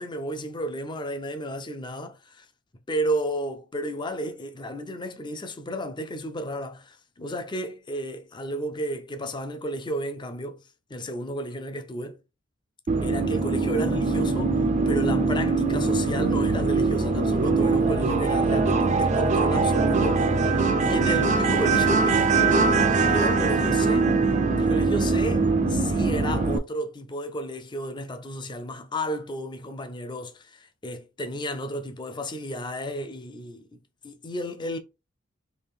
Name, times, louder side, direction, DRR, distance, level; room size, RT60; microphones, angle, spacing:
voice 1, 0.0-2.5 2.9-10.6 10.9-12.2 13.0-14.6 14.9-24.1 24.6-33.8 34.0-34.8, equal, 25° left, 0.5 m, -32 dB
sound 1, 12.9-26.6, right 4 dB, 35° right, 0.5 m, -22 dB
3.4 x 2.5 x 3.7 m
head